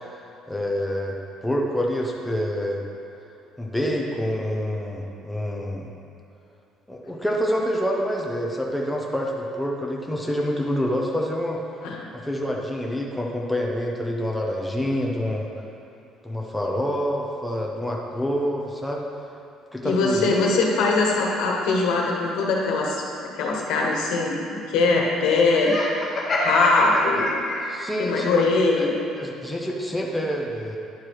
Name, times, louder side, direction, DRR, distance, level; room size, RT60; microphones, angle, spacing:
voice 1, 0.5-1.1 1.4-2.8 3.6-5.9 6.9-11.6 12.1-15.5 16.2-19.0 19.7-20.5 27.6-30.8, equal, ahead, -2 dB, 0.7 m, -27 dB
voice 2, 19.8-23.0 23.3-25.8 26.4-27.3 28.0-28.9, left 3 dB, 90° left, -1 dB, 1.3 m, -21 dB
Laughter, 25.6-27.9, left 1 dB, 25° left, 1.3 m, -26 dB
10.0 x 4.6 x 4.7 m, 2.9 s
cardioid pair, 165°, 0 cm